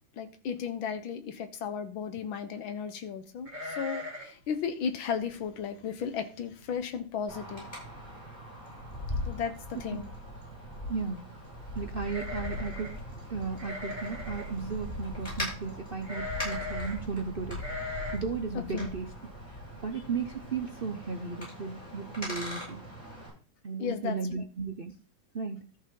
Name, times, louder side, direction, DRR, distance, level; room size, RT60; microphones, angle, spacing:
voice 1, 0.2-7.7 9.3-10.1 18.6-18.9 23.8-24.5, left 7 dB, 90° left, 9 dB, 1.9 m, -35 dB
sound 1, 3.5-4.4 4.7-4.8 5.2-5.5 6.1-6.2 6.5-7.0 7.3-7.4 8.5-8.6 8.9-9.3 12.0-13.0 13.6-14.5 16.0-17.0 17.6-18.2, left 2 dB, 25° right, 2.3 m, -39 dB
Wind, 7.3-23.3, left 1 dB, 20° left, 7.2 m, -40 dB
voice 2, 10.9-11.2 11.8-12.9 13.3-17.6 18.1-19.1 19.8-22.8 23.6-24.9 25.3-25.7, right 5 dB, 50° right, 5 dB, 0.6 m, -35 dB
13.5 x 6.5 x 3.8 m, 0.35 s
omnidirectional pair, 2.1 m